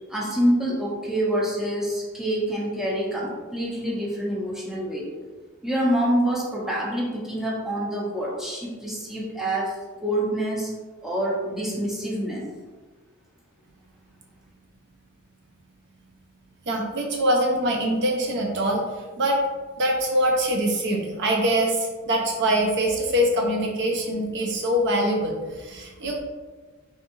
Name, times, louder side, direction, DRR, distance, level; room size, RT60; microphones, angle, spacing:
voice 1, 0.1-5.1 5.6-10.7 11.0-12.4, right 1 dB, ahead, -5 dB, 0.7 m, -26 dB
voice 2, 16.7-18.8 19.2-19.4 19.8-26.2, right 1 dB, 55° right, 0 dB, 0.5 m, -23 dB
3.5 x 2.8 x 2.6 m, 1.3 s
head